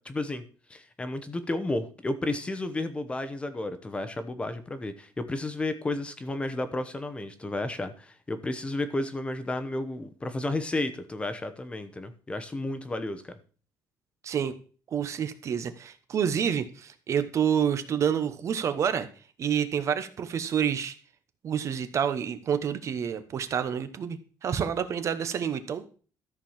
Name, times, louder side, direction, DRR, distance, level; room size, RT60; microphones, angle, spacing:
voice 1, 0.0-0.4 0.7-13.4, left 2 dB, 15° left, 10 dB, 0.9 m, -32 dB
voice 2, 14.2-14.5 14.9-19.1 19.4-20.9 21.4-26.0, right 8 dB, 40° right, 11 dB, 1.0 m, -28 dB
13.5 x 4.7 x 7.3 m, 0.39 s
cardioid pair, 165°, 8 cm